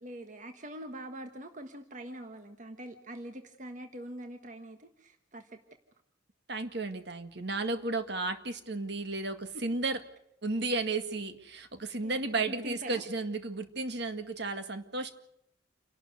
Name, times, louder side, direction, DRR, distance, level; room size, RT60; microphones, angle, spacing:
voice 1, 0.0-5.6 9.5-9.6 12.0-13.0, right 1 dB, 40° right, 6 dB, 1.5 m, -44 dB
voice 2, 6.5-10.0 10.4-15.1, right 3 dB, 60° right, 8 dB, 1.9 m, -33 dB
28.5 x 12.0 x 9.5 m, 0.74 s
head